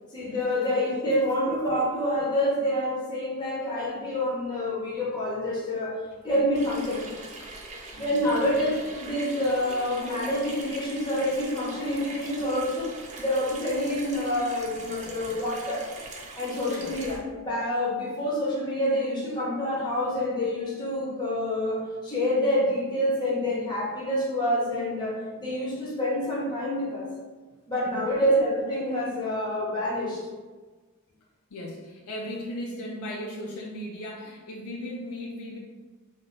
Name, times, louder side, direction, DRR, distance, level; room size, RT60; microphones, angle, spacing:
voice 1, 0.1-7.0 7.9-15.9 16.4-27.1 27.7-30.2, left 1 dB, 20° left, -6 dB, 0.8 m, -27 dB
Water tap faucet / Sink (filling or washing), 6.5-17.2, right 2 dB, 35° right, 0.5 m, -42 dB
voice 2, 31.5-35.6, left 1 dB, 80° left, -2 dB, 0.5 m, -37 dB
3.2 x 2.1 x 3.8 m, 1.3 s
head